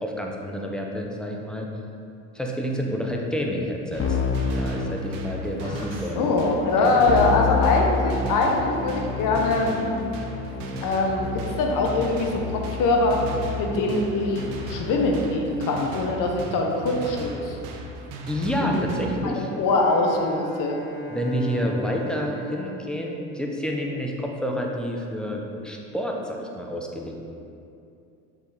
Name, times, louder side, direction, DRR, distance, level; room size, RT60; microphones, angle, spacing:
voice 1, 0.0-1.7 2.3-4.2 4.6-6.3 6.8-7.2 18.3-19.5 21.1-27.2, equal, ahead, 0 dB, 0.9 m, -29 dB
sound 1, 3.9-19.2, right 2 dB, 75° right, 0.9 m, -38 dB
Keyboard (musical), 4.0-5.7 7.1-15.5, left 4 dB, 35° left, 0.7 m, -30 dB
voice 2, 6.1-9.8 10.8-13.2 13.5-17.6 18.6-18.9 19.3-20.8, left 3 dB, 60° left, 1 dB, 1.1 m, -23 dB
Bowed string instrument, 19.3-24.1, right 2 dB, 85° left, 1.5 m, -41 dB
6.7 x 5.0 x 4.1 m, 2.6 s
supercardioid pair, 85°, 37 cm